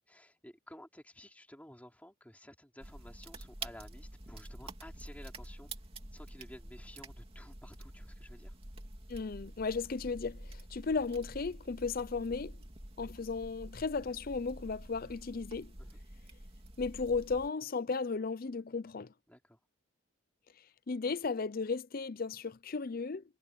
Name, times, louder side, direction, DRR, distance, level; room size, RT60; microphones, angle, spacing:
voice 1, 0.0-5.7 6.1-8.5 15.8-16.0 19.3-19.6, left 1 dB, 5° left, 3.5 m, -53 dB
sound 1, 2.8-17.5, right 2 dB, 30° right, 2.7 m, -48 dB
voice 2, 9.1-12.5 13.0-15.7 16.8-19.1 20.9-23.2, left 4 dB, 45° left, 0.5 m, -35 dB
head